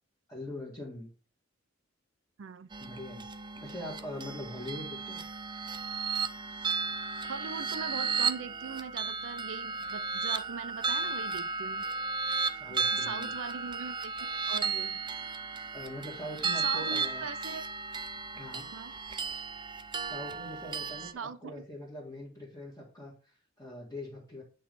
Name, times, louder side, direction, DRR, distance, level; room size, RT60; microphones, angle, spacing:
voice 1, 0.3-1.1 2.8-3.3 3.6-5.2 12.5-13.3 15.7-17.3 18.3-18.7 20.0-24.4, left 1 dB, 15° left, 1.8 m, -42 dB
voice 2, 2.4-2.7 7.3-11.8 12.7-15.0 16.6-17.7 18.7-18.9 21.1-21.4, right 5 dB, 75° right, 0.5 m, -41 dB
sound 1, 2.7-21.1, right 5 dB, 25° right, 0.5 m, -34 dB
8.6 x 3.2 x 5.3 m
head